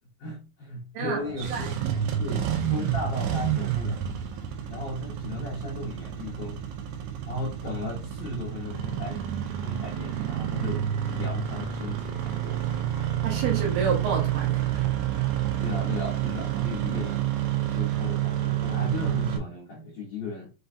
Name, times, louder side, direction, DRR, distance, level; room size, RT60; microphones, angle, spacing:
voice 1, 0.2-1.8 2.1-4.0 4.7-6.7 7.3-9.3 9.6-12.9 15.6-17.3 17.7-20.5, left 2 dB, 70° left, 2.0 m, -36 dB
voice 2, 0.9-1.7 13.2-15.2, right 5 dB, 70° right, 2.5 m, -30 dB
Engine starting, 1.3-19.4, right 11 dB, 85° right, 2.7 m, -29 dB
6.7 x 2.3 x 2.6 m
omnidirectional pair, 4.8 m